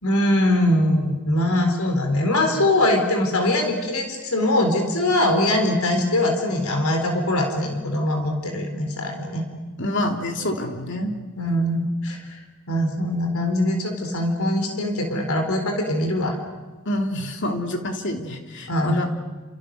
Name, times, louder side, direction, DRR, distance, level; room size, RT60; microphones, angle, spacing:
voice 1, 0.0-9.4 11.4-12.4 12.7-16.4 18.7-19.0, left 1 dB, 80° left, 4 dB, 4.2 m, -22 dB
voice 2, 9.8-11.1 16.8-19.1, left 1 dB, 60° left, 4 dB, 3.1 m, -27 dB
29.5 x 28.5 x 6.7 m, 1.3 s
head